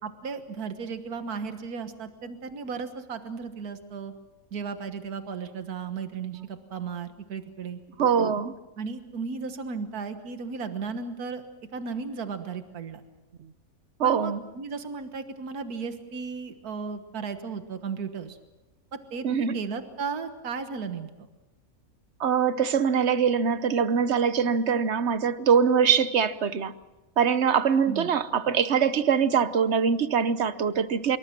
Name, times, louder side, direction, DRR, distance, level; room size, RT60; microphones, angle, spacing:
voice 1, 0.0-4.1 4.5-7.8 8.8-11.4 11.7-13.0 14.0-18.4 18.9-21.3 27.9-28.1, right 5 dB, 75° right, 1.9 m, -35 dB
voice 2, 8.0-8.5 14.0-14.4 19.2-19.6 22.2-26.7 27.2-31.2, right 7 dB, 50° right, 1.0 m, -23 dB
25.5 x 23.0 x 6.0 m
omnidirectional pair, 1.6 m